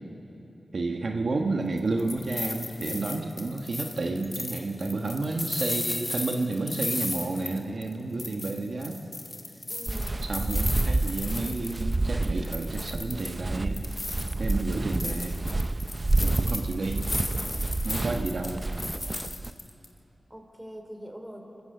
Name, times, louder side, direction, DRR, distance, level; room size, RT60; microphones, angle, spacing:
voice 1, 0.7-9.0 10.2-13.8 14.4-15.5 16.2-17.0 17.8-18.6, right 3 dB, 70° right, 2 dB, 1.3 m, -31 dB
sound 1, 1.8-7.9 8.2-12.0 12.2-13.4 13.7-19.9, left 2 dB, 35° left, 2.0 m, -35 dB
voice 2, 9.7-10.2 20.3-21.6, equal, 15° right, 3 dB, 3.8 m, -43 dB
Walk footsteps, 9.9-19.5, right 2 dB, 40° right, 0.5 m, -29 dB
26.0 x 16.0 x 6.8 m, 2.9 s
cardioid pair, 45°, 0 cm